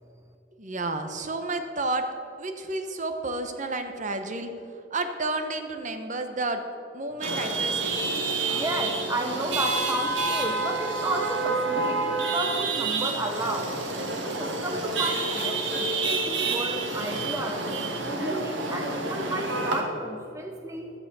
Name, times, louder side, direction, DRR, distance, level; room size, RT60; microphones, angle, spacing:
voice 1, 0.6-2.0 2.4-4.5 4.9-6.6 6.9-8.1, right 2 dB, 40° right, 7 dB, 1.1 m, -31 dB
Chatter / Vehicle horn car horn honking / Traffic noise roadway noise, 7.2-19.8, right 3 dB, 70° right, 1.9 m, -28 dB
voice 2, 8.5-13.7 14.2-17.6 18.1-20.9, right 1 dB, 15° right, 3 dB, 0.9 m, -32 dB
12.5 x 9.5 x 6.9 m, 2.6 s
head